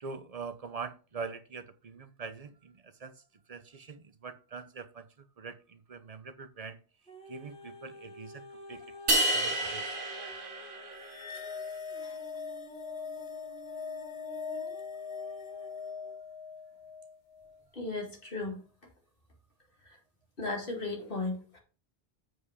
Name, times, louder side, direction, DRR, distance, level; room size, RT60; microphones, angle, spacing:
voice 1, 0.0-3.1 3.5-5.1 5.4-6.8 7.3-9.0 9.3-9.9, right 5 dB, 40° right, 11 dB, 0.7 m, -43 dB
sound 1, 7.1-16.2 16.8-16.9, equal, 5° left, 1.6 m, -50 dB
sound 2, 9.1-11.4, right 1 dB, 60° right, 1.2 m, -30 dB
sound 3, 11.0-17.6, left 6 dB, 80° left, 1.2 m, -41 dB
voice 2, 17.8-18.6 20.4-21.6, left 3 dB, 60° left, -1 dB, 2.3 m, -35 dB
7.8 x 4.9 x 4.9 m, 0.35 s
omnidirectional pair, 1.0 m